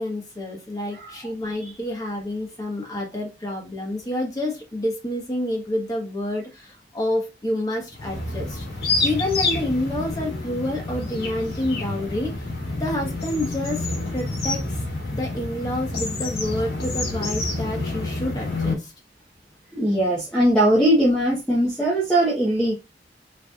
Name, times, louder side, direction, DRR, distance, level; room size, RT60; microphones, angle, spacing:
voice 1, 0.0-8.6 9.0-12.3 12.8-13.9 14.1-14.8 15.1-18.9, left 1 dB, 20° left, 1.4 m, -28 dB
sound 1, 7.9-18.7, left 2 dB, 60° left, 1.6 m, -28 dB
voice 2, 19.7-22.7, right 1 dB, 5° left, 1.2 m, -20 dB
5.6 x 3.2 x 2.4 m
head